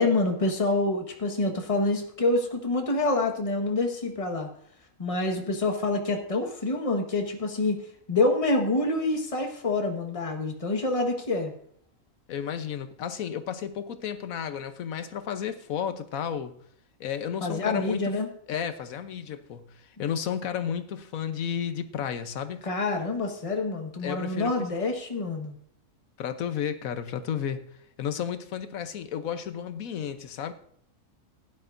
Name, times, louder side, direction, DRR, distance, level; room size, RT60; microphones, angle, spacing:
voice 1, 0.0-4.5 5.0-7.8 8.1-11.5 17.4-18.3 22.6-25.5, left 2 dB, 25° left, 1.5 m, -27 dB
voice 2, 12.3-16.6 17.0-18.2 18.5-22.6 24.0-24.7 26.2-27.6 28.0-30.5, left 8 dB, 80° left, 1.3 m, -32 dB
16.5 x 11.0 x 2.6 m
omnidirectional pair, 1.4 m